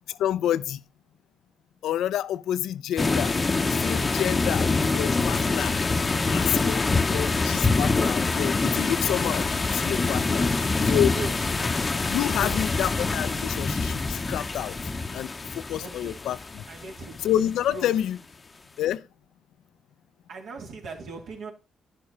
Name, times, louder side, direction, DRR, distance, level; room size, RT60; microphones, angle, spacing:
voice 1, 0.2-0.8 1.8-3.4 3.7-5.7 6.3-9.4 9.7-10.5 10.8-11.1 12.1-14.8 15.1-16.6 17.2-18.2 18.8-19.0, left 11 dB, 80° left, 0.5 m, -28 dB
sound 1, 3.0-17.5, left 3 dB, 25° left, 0.8 m, -25 dB
voice 2, 15.8-16.2 16.7-17.2 17.7-17.9 20.3-21.5, right 3 dB, 70° right, 3.2 m, -38 dB
11.0 x 6.6 x 5.4 m
cardioid pair, 90°, 0 cm